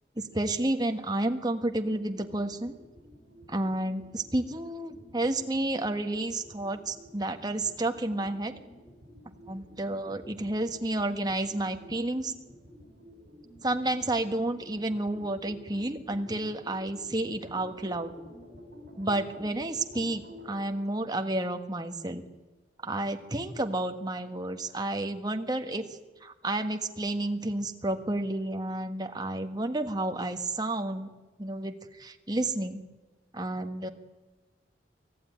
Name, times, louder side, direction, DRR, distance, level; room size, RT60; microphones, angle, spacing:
voice 1, 0.2-2.7 3.5-8.5 9.5-12.3 13.6-18.1 19.0-22.2 22.8-25.9 26.2-31.1 31.4-32.8 33.3-33.9, right 1 dB, 20° right, 6 dB, 1.4 m, -31 dB
sound 1, 1.8-20.6, equal, 55° right, 7.5 m, -51 dB
24.5 x 15.5 x 9.5 m, 1.2 s
head